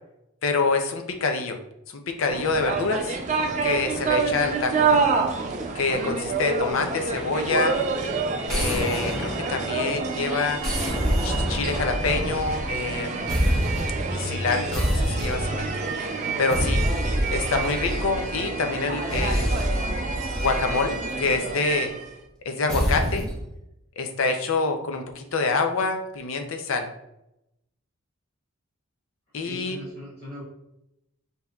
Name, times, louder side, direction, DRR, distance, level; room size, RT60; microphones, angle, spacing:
voice 1, 0.4-1.6 2.1-3.2 3.6-5.0 5.7-7.8 8.5-10.6 11.2-13.3 14.1-15.7 16.4-16.8 17.3-19.6 20.3-21.9 22.4-23.3 24.0-26.9 29.3-29.8, left 4 dB, 65° left, 5 dB, 0.5 m, -26 dB
sound 1, 2.3-22.1, right 4 dB, 35° right, 0.4 m, -28 dB
sound 2, 8.5-10.1 10.6-13.0 13.3-14.1 14.7-15.7 16.5-18.4 19.1-21.5 22.7-23.4, equal, 5° left, 1.1 m, -27 dB
voice 2, 29.4-30.4, left 1 dB, 30° left, -7 dB, 0.9 m, -40 dB
5.5 x 2.8 x 2.3 m, 0.85 s
head